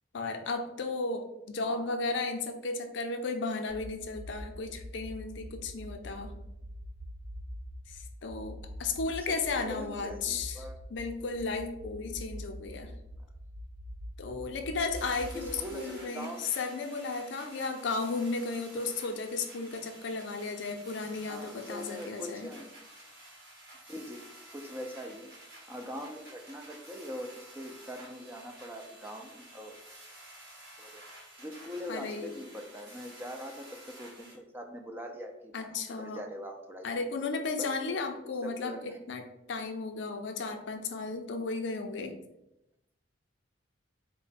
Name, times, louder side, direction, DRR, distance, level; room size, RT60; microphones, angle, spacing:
voice 1, 0.1-6.3 7.9-12.9 14.2-22.5 31.9-32.3 35.5-36.2 36.8-42.1, left 3 dB, 70° left, 5 dB, 0.5 m, -34 dB
voice 2, 1.6-2.0 9.1-9.4 9.6-10.7 15.3-16.4 21.3-22.7 23.9-24.2 24.5-25.3 25.7-29.8 30.8-31.0 31.4-37.0 37.6-38.0 38.2-39.0, equal, 10° right, 3 dB, 0.3 m, -42 dB
sound 1, 3.7-15.7, equal, 85° right, 0.4 m, -45 dB
sound 2, 14.9-34.3, right 1 dB, 55° right, 1.5 m, -51 dB
3.7 x 2.1 x 4.1 m, 0.86 s
head